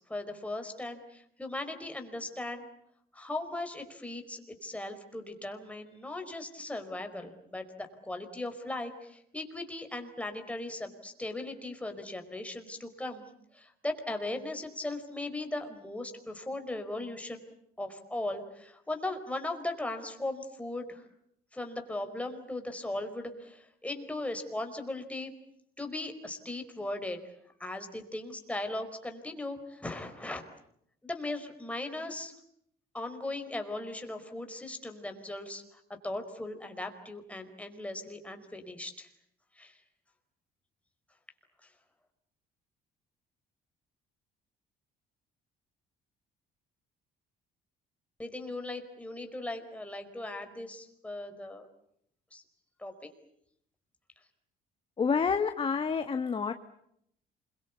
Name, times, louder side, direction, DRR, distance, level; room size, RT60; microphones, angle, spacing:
voice 1, 0.1-2.7 3.1-13.2 13.5-17.4 17.8-21.0 21.5-25.3 25.8-27.2 27.6-30.4 31.0-32.3 32.9-39.1 39.6-39.8 48.2-51.7 52.3-52.4 52.8-53.1, left 2 dB, 10° left, 5 dB, 4.8 m, -38 dB
voice 2, 55.0-56.5, left 5 dB, 30° left, 8 dB, 1.5 m, -28 dB
28.0 x 23.5 x 8.4 m, 0.72 s
cardioid pair, 110°, 17 cm